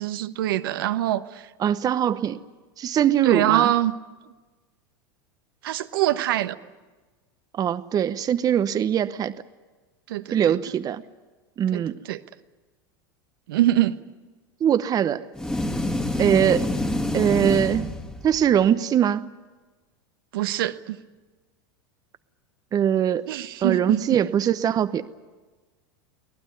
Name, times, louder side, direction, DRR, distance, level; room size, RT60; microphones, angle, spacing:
voice 1, 0.0-1.4 3.2-4.0 5.6-6.6 10.1-10.5 11.7-12.2 13.5-13.9 20.3-21.0 23.3-24.0, right 13 dB, 75° right, 10 dB, 1.1 m, -24 dB
voice 2, 1.6-2.4 2.8-3.7 7.6-9.3 10.3-11.0 11.6-12.0 14.6-15.2 16.2-16.7 17.1-17.9 18.2-19.3 22.7-23.3 23.6-25.2, right 9 dB, 30° right, 13 dB, 0.9 m, -22 dB
sound 1, 15.4-18.5, left 1 dB, 5° left, 2.0 m, -27 dB
24.5 x 17.5 x 9.7 m, 1.3 s
hypercardioid pair, 100°, 12 cm